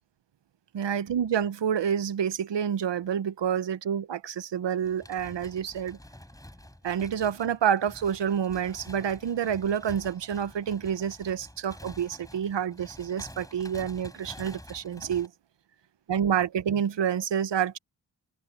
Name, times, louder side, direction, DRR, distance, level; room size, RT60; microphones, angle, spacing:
voice 1, 0.7-6.0 6.8-15.3 16.1-17.8, right 8 dB, 85° right, 0.8 m, -28 dB
sound 1, 4.8-15.3, left 1 dB, 10° left, 4.6 m, -48 dB
open air
wide cardioid pair, 120°, 42 cm